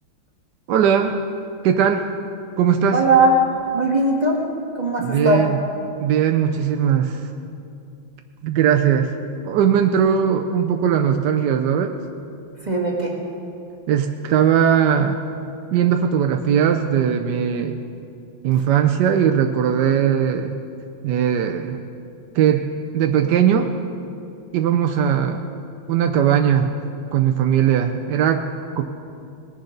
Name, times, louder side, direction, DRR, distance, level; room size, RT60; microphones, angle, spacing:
voice 1, 0.7-1.2 1.6-2.1 2.6-3.0 5.0-5.6 6.0-7.3 8.4-9.1 9.4-11.9 13.9-15.2 15.7-17.8 18.4-20.5 21.0-21.8 22.3-22.7 22.9-23.7 24.5-25.4 25.9-26.7 27.1-28.5 28.8-28.9, right 8 dB, 70° right, 5 dB, 1.2 m, -19 dB
voice 2, 2.9-3.4 3.7-4.4 4.8-5.4 12.6-13.1, right 2 dB, 25° right, -3 dB, 1.7 m, -18 dB
19.5 x 10.5 x 3.9 m, 2.6 s
omnidirectional pair, 2.0 m